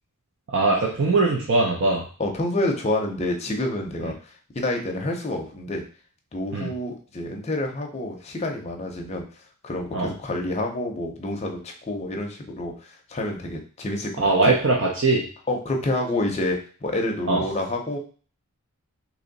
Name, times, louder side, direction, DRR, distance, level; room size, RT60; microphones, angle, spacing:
voice 1, 0.5-2.0 6.5-6.7 9.9-10.1 14.2-15.2 17.3-17.4, right 3 dB, 55° right, -2 dB, 0.6 m, -21 dB
voice 2, 2.2-4.1 4.5-5.8 6.3-9.2 9.6-14.3 15.5-18.0, left 1 dB, 30° left, 2 dB, 0.6 m, -28 dB
2.9 x 2.7 x 3.9 m, 0.41 s
head